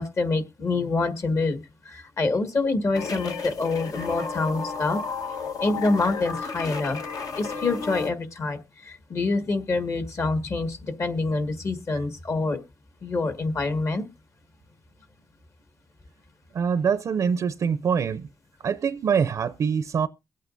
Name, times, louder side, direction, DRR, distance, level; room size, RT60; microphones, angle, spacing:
voice 1, 0.0-5.0 5.6-7.0 7.3-12.6 13.0-14.0, left 3 dB, 50° left, 1.8 m, -26 dB
sound 1, 2.9-8.1, left 5 dB, 75° left, 1.6 m, -33 dB
voice 2, 16.5-18.3 18.6-20.1, right 6 dB, 65° right, 0.5 m, -24 dB
22.5 x 8.4 x 2.6 m
cardioid pair, 105°, 6 cm